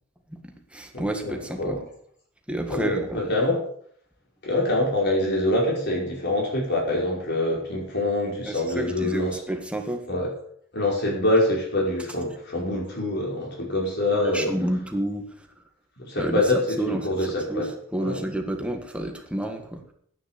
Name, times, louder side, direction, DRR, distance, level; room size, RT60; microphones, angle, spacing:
voice 1, 0.3-1.8 2.5-3.2 8.4-10.1 14.2-15.3 16.2-16.4 16.8-17.1 17.5-19.8, right 1 dB, 5° right, 4 dB, 1.6 m, -30 dB
voice 2, 0.9-1.9 2.7-3.6 4.4-9.4 10.1-10.3 10.7-14.5 16.0-17.7 18.0-18.2, left 1 dB, 55° left, -2 dB, 5.2 m, -25 dB
10.5 x 9.4 x 6.7 m, 0.63 s
head